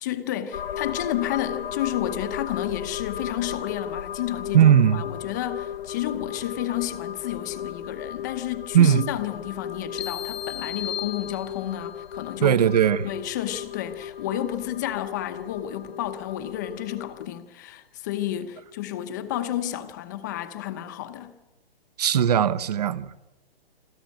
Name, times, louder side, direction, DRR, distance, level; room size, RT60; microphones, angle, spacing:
voice 1, 0.0-12.6 13.0-21.3, left 12 dB, 20° left, 0.9 m, -31 dB
sound 1, 0.5-17.3, left 9 dB, 65° left, 0.7 m, -36 dB
voice 2, 4.5-5.0 8.7-9.0 12.4-13.1 22.0-23.1, right 9 dB, 40° right, 0.9 m, -18 dB
sound 2, 10.0-11.9, left 9 dB, 85° left, 1.6 m, -35 dB
26.5 x 13.5 x 9.1 m
hypercardioid pair, 170°, 31 cm